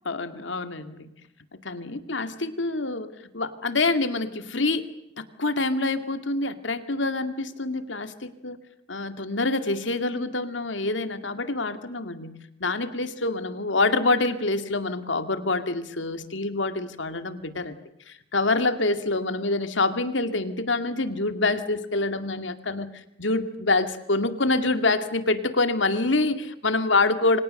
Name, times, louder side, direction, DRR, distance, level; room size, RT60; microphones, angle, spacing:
voice 1, 0.1-1.1 1.6-3.1 3.3-4.9 5.2-8.6 8.9-17.8 18.1-22.9 23.2-27.4, left 2 dB, 75° left, 9 dB, 2.2 m, -26 dB
29.5 x 26.0 x 6.6 m, 0.80 s
head